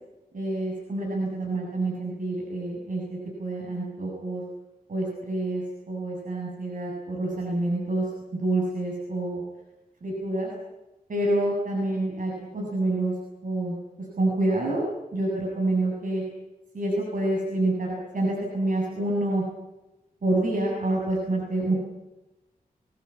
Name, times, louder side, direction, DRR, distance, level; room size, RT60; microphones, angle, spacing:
voice 1, 0.3-4.4 4.9-8.1 8.4-9.4 10.0-10.5 11.1-13.1 13.4-13.8 14.2-14.8 15.1-16.2 16.7-19.4 20.2-21.7, right 2 dB, 60° right, -3 dB, 7.6 m, -27 dB
24.5 x 20.0 x 8.6 m, 1.0 s
wide cardioid pair, 85°, 15 cm